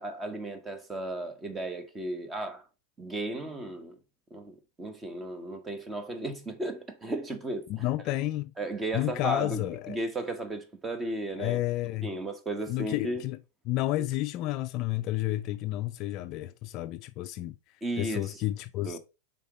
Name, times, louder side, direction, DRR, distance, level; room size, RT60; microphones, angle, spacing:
voice 1, 0.0-2.6 3.0-3.9 4.3-7.7 8.6-11.6 12.0-13.2 17.8-18.4 18.8-19.0, right 1 dB, 15° right, 1.0 m, -35 dB
voice 2, 7.7-8.5 8.9-10.0 11.4-12.1 12.7-13.4 13.7-17.6 18.0-19.0, left 16 dB, 45° left, 0.4 m, -31 dB
5.6 x 3.8 x 4.7 m
supercardioid pair, 135°, 0 cm